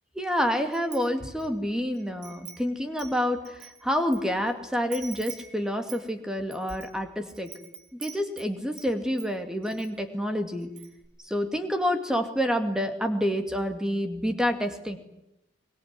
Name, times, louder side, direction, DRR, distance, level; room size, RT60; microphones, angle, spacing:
voice 1, 0.2-7.5 8.0-10.7 11.2-15.0, equal, 5° right, 6 dB, 2.3 m, -28 dB
Wind chime, 0.7-1.5 1.9-4.2 4.5-4.6 4.9-8.9 9.2-9.9 10.2-10.3 10.6-11.1, right 6 dB, 45° right, 4.1 m, -45 dB
24.5 x 22.0 x 9.8 m, 0.84 s
head